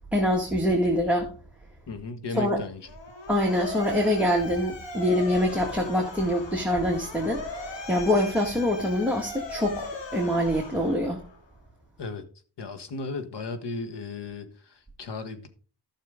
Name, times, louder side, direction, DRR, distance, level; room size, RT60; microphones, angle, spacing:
voice 1, 0.1-1.3 2.3-2.6 3.3-11.2, equal, 5° right, 1.9 m, -25 dB
voice 2, 1.9-2.9 12.0-12.2 12.6-15.5, left 3 dB, 70° left, 1.6 m, -35 dB
Motor vehicle (road) / Siren, 2.8-11.4, left 3 dB, 90° left, 2.2 m, -39 dB
13.0 x 6.6 x 3.8 m
wide cardioid pair, 105°, 43 cm